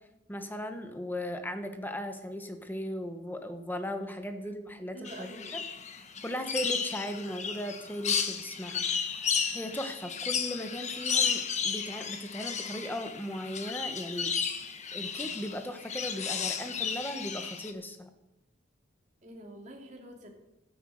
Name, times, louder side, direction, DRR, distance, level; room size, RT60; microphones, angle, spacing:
voice 1, 0.3-5.6 6.2-9.2 9.5-14.4 14.9-18.1, equal, 10° left, 7 dB, 1.3 m, -37 dB
voice 2, 4.9-5.6 19.2-20.3, right 1 dB, 40° right, 1 dB, 2.9 m, -46 dB
sound 1, 5.0-17.7, left 6 dB, 35° left, 1.2 m, -33 dB
12.5 x 10.5 x 7.9 m, 0.94 s
head